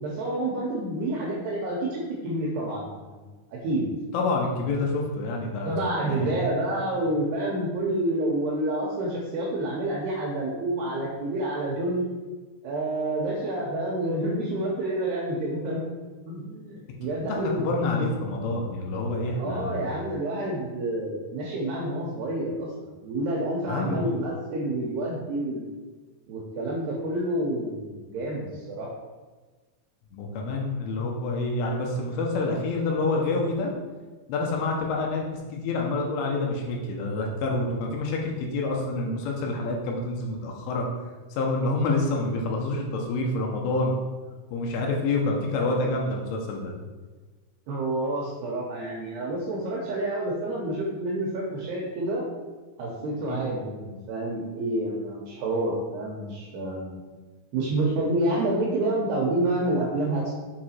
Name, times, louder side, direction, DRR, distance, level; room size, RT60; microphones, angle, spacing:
voice 1, 0.0-3.9 5.6-12.1 12.6-15.8 16.3-17.6 19.2-22.7 23.0-25.7 26.3-28.9 47.7-52.2 52.8-57.0 57.5-60.3, right 1 dB, 80° right, -4 dB, 2.4 m, -28 dB
voice 2, 4.1-6.4 17.2-19.8 23.7-24.1 30.1-33.7 34.3-40.9 41.3-43.9 44.5-46.7 53.3-53.4, left 2 dB, 80° left, 0 dB, 3.3 m, -27 dB
7.3 x 4.8 x 4.4 m, 1.3 s
omnidirectional pair, 5.9 m